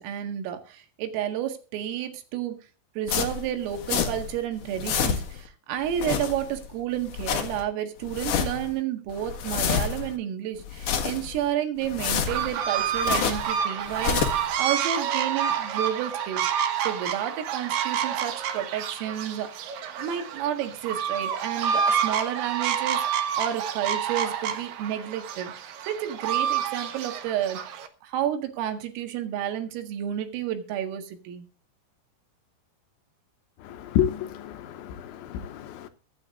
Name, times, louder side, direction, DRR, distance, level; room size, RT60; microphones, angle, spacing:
voice 1, 0.0-2.6 3.0-27.6 28.0-31.5, right 10 dB, 85° right, 4.4 m, -31 dB
sound 1, 3.1-4.4 4.6-5.5 5.8-6.7 7.0-7.6 8.0-8.7 9.1-10.2 10.6-11.4 11.8-13.5 13.9-14.5, left 8 dB, 60° left, 2.4 m, -28 dB
sound 2, 12.3-27.9, right 8 dB, 70° right, 2.2 m, -28 dB
voice 2, 33.6-35.9, left 10 dB, 80° left, 3.2 m, -29 dB
23.0 x 9.0 x 2.5 m
omnidirectional pair, 5.8 m